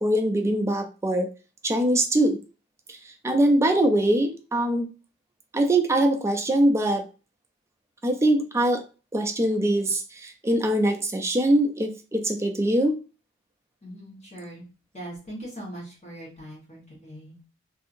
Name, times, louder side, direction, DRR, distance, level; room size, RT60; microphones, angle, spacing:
voice 1, 0.0-1.3 1.6-2.4 2.9-3.0 3.2-4.9 5.5-7.1 8.0-8.8 9.1-13.0, right 1 dB, 15° right, 4 dB, 0.4 m, -22 dB
voice 2, 13.8-14.6 14.9-17.4, right 1 dB, 35° left, -4 dB, 1.2 m, -40 dB
2.7 x 2.6 x 2.5 m, 0.32 s
head